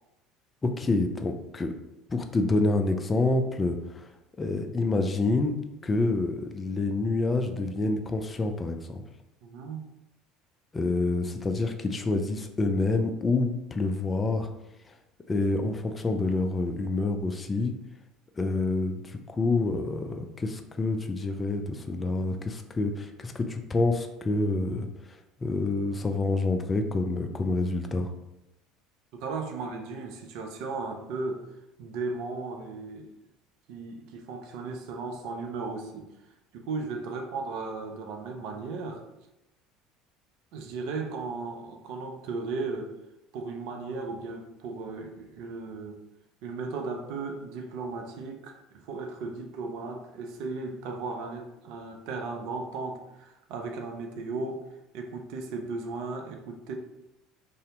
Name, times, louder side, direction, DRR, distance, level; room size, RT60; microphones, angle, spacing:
voice 1, 0.6-1.7 2.1-4.0 4.4-5.6 5.8-9.0 10.7-14.5 15.3-17.7 18.4-24.9 25.4-28.1, left 2 dB, 25° left, 6 dB, 0.3 m, -27 dB
voice 2, 9.4-9.9 29.1-31.4 31.8-33.1 33.7-36.1 36.5-39.0 40.5-42.9 43.3-46.0 46.4-54.6 54.9-56.7, right 3 dB, 55° right, 4 dB, 0.4 m, -36 dB
2.6 x 2.1 x 3.7 m, 0.91 s
figure-of-eight pair, 65°, 0 cm